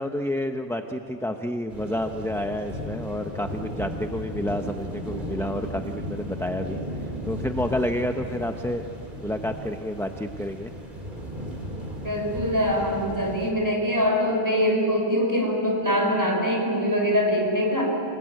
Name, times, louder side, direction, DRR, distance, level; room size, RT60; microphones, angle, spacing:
voice 1, 0.0-6.8 7.2-8.9 9.2-10.7, left 1 dB, 5° left, 6 dB, 0.7 m, -29 dB
sound 1, 1.7-13.5, equal, 50° right, 3.8 m, -35 dB
voice 2, 12.0-17.8, equal, 20° right, -1 dB, 5.8 m, -23 dB
28.5 x 19.0 x 9.0 m, 2.8 s
omnidirectional pair, 1.0 m